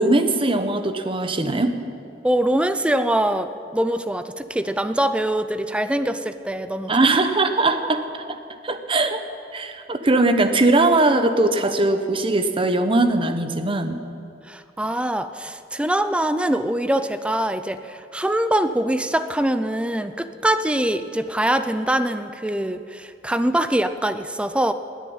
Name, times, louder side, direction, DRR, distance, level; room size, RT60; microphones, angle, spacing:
voice 1, 0.0-1.8 6.9-8.2 8.6-9.2 9.5-14.0, right 2 dB, 30° right, 8 dB, 0.9 m, -20 dB
voice 2, 2.2-6.9 14.5-24.7, right 1 dB, 5° right, 10 dB, 0.5 m, -23 dB
19.5 x 7.5 x 8.7 m, 2.5 s
head